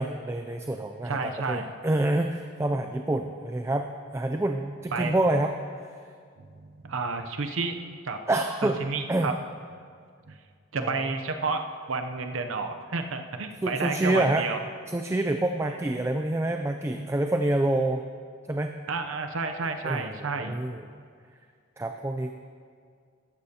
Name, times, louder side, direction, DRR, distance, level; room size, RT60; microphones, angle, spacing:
voice 1, 0.0-5.6 5.8-5.9 8.3-8.8 9.1-9.3 10.8-11.1 13.6-14.5 14.9-18.1 18.5-18.8 19.8-20.8 21.8-22.3, right 1 dB, 15° right, 5 dB, 0.3 m, -27 dB
voice 2, 1.1-1.7 4.9-5.1 6.5-7.7 8.0-8.2 8.8-9.3 10.3-10.4 10.7-11.6 11.9-14.6 18.9-20.6, right 4 dB, 85° right, 6 dB, 0.7 m, -30 dB
14.5 x 11.5 x 2.8 m, 2.1 s
head